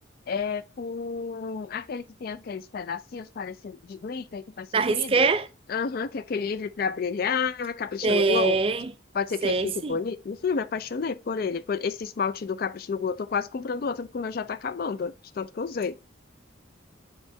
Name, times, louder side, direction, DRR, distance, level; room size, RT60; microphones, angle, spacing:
voice 1, 0.3-5.3 5.7-8.6 9.1-16.0, left 5 dB, 45° left, 0.3 m, -30 dB
voice 2, 4.7-5.5 8.0-8.9 9.4-10.0, right 4 dB, 25° right, 0.4 m, -23 dB
4.6 x 3.5 x 3.1 m
head